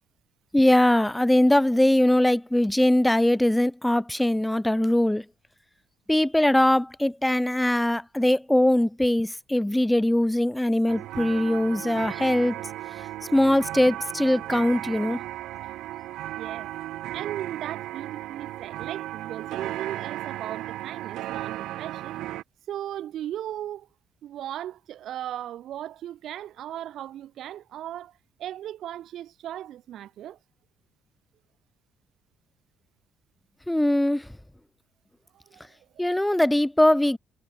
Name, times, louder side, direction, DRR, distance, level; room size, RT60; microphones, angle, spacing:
voice 1, 0.5-5.3 6.1-12.6 13.3-15.2 33.7-34.3 36.0-37.2, left 1 dB, 5° left, 0.4 m, -21 dB
sound 1, 10.9-22.4, right 15 dB, 80° right, 1.5 m, -35 dB
voice 2, 16.3-16.7 17.1-22.2 22.7-23.9 24.2-28.1 28.4-30.4 35.3-35.6 35.9-36.0, right 12 dB, 65° right, 0.5 m, -37 dB
cardioid pair, 130°, 0 cm